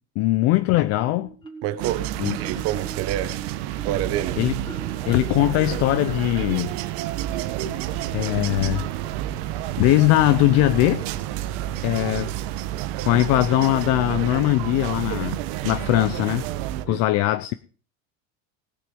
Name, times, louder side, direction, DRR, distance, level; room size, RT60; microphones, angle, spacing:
voice 1, 0.2-1.3 2.2-2.5 4.4-4.5 5.1-6.7 7.7-7.8 8.1-8.8 9.8-11.0 11.8-12.3 13.0-15.4 15.6-16.5 16.8-17.5, left 16 dB, 50° left, 0.6 m, -20 dB
Marimba xylophone, 1.0-1.9 2.3-7.8, right 4 dB, 15° left, 2.7 m, -41 dB
voice 2, 1.6-3.4 3.8-4.4 16.8-17.0, right 12 dB, 50° right, 1.0 m, -28 dB
sound 1, 1.8-16.8, right 13 dB, 80° right, 1.1 m, -29 dB
sound 2, 7.8-12.8, right 3 dB, 15° right, 2.6 m, -47 dB
19.5 x 6.6 x 5.2 m
cardioid pair, 155°, 32 cm